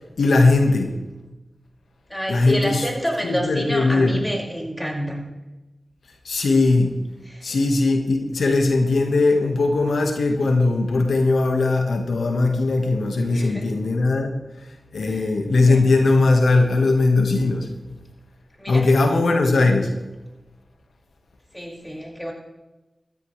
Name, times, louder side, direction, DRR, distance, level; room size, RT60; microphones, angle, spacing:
voice 1, 0.2-0.9 2.3-2.9 3.2-4.2 6.2-6.9 7.4-14.3 14.9-17.7 18.7-19.9, left 3 dB, 90° left, 4 dB, 1.5 m, -19 dB
voice 2, 2.1-5.2 7.2-7.6 13.3-13.7 15.0-15.3 15.7-16.0 18.6-18.9 21.5-22.3, equal, 10° left, -1 dB, 5.6 m, -29 dB
16.5 x 13.5 x 3.3 m, 1.1 s
cardioid pair, 40°, 0 cm